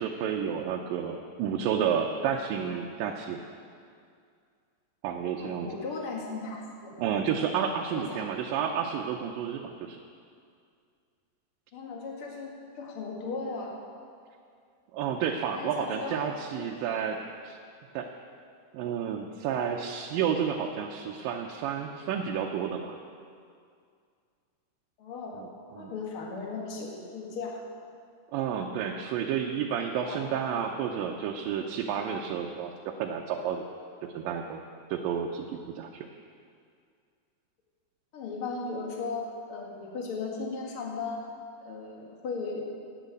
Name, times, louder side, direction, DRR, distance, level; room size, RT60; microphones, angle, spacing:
voice 1, 0.0-3.4 5.0-5.7 7.0-10.0 14.9-17.2 17.4-17.6 17.9-18.1 18.7-23.0 25.8-25.9 28.3-32.7 33.0-33.6 34.2-34.6 34.9-35.5 35.7-35.9, right 8 dB, 80° right, 1 dB, 2.3 m, -30 dB
voice 2, 5.4-6.9 7.9-8.2 8.7-8.8 11.7-13.7 15.5-16.2 16.6-16.7 25.0-25.4 25.8-27.6 29.8-30.3 38.1-41.2 41.6-42.6, left 4 dB, 45° left, -1 dB, 2.3 m, -36 dB
11.5 x 9.0 x 8.3 m, 2.3 s
omnidirectional pair, 4.2 m